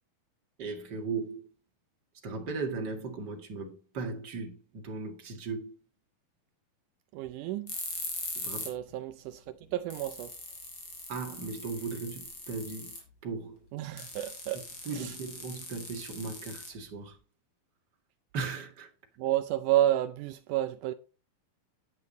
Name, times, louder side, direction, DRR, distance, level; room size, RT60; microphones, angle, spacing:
voice 1, 0.6-1.5 2.1-5.8 8.3-8.7 11.1-13.0 13.2-13.7 14.9-17.2 18.3-18.9, right 4 dB, 35° right, 2.0 m, -37 dB
voice 2, 7.1-7.7 8.7-10.3 13.7-14.6 14.9-15.1 19.2-20.9, right 13 dB, 85° right, 1.8 m, -30 dB
sound 1, 7.7-8.8 9.1-9.2 9.6-9.7 9.9-13.1 14.0-17.1, left 3 dB, 35° left, 4.2 m, -41 dB
10.0 x 9.4 x 4.1 m
omnidirectional pair, 4.4 m